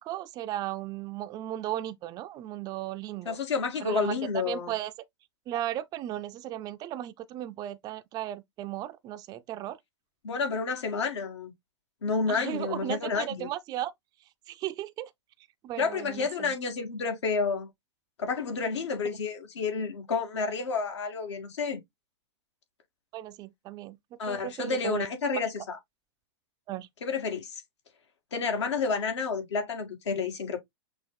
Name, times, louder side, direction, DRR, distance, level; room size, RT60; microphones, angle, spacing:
voice 1, 0.0-3.4 3.8-4.1 4.5-4.9 5.5-9.8 12.3-13.9 14.5-15.1 15.6-16.5 23.1-24.0 24.3-25.1 26.7-26.9, right 13 dB, 25° right, 0.4 m, -35 dB
voice 2, 3.3-4.7 10.2-11.5 12.0-13.5 15.8-17.7 18.2-21.8 24.2-25.8 27.0-27.6 28.3-30.6, left 5 dB, 75° left, 1.9 m, -30 dB
6.1 x 2.3 x 3.7 m
hypercardioid pair, 120°, 15 cm